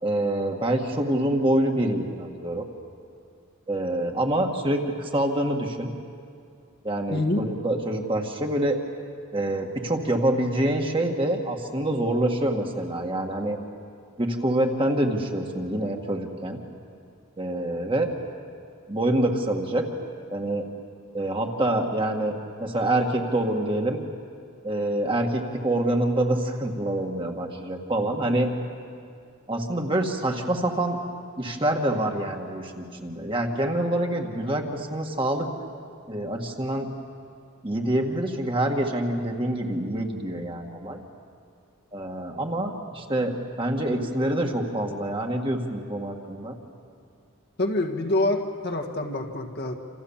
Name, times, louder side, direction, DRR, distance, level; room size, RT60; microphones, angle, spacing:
voice 1, 0.0-2.7 3.7-5.9 6.8-8.8 9.3-13.6 14.2-16.6 17.4-18.1 18.9-19.9 20.3-20.7 21.1-24.0 24.6-28.5 29.5-31.0 31.4-35.5 36.1-36.9 37.6-41.0 41.9-43.3 43.6-46.6, right 1 dB, 25° right, 2 dB, 1.9 m, -26 dB
voice 2, 7.1-7.4 47.6-49.7, left 2 dB, 50° left, 3 dB, 1.7 m, -26 dB
28.0 x 28.0 x 7.3 m, 2.3 s
head